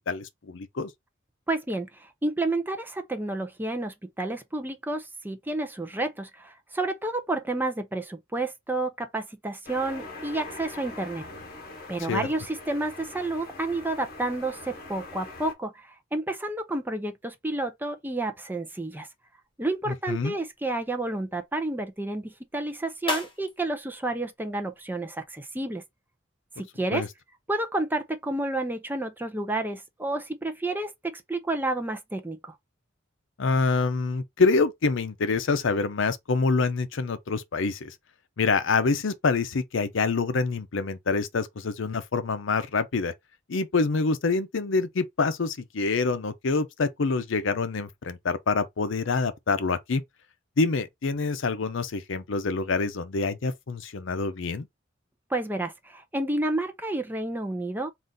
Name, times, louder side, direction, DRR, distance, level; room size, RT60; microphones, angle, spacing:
voice 1, 0.1-0.9 12.1-12.3 19.9-20.3 26.9-27.1 33.4-37.9 38.4-43.1 43.5-50.0 50.6-54.7, left 4 dB, 70° left, 0.6 m, -26 dB
voice 2, 1.5-11.2 11.9-19.1 19.6-25.8 26.6-27.0 27.5-32.5 55.3-57.9, right 2 dB, 10° right, 0.6 m, -30 dB
sound 1, 9.7-15.5, left 2 dB, 50° left, 1.1 m, -42 dB
sound 2, 19.4-25.4, left 2 dB, 25° left, 1.4 m, -40 dB
3.9 x 2.5 x 3.8 m
head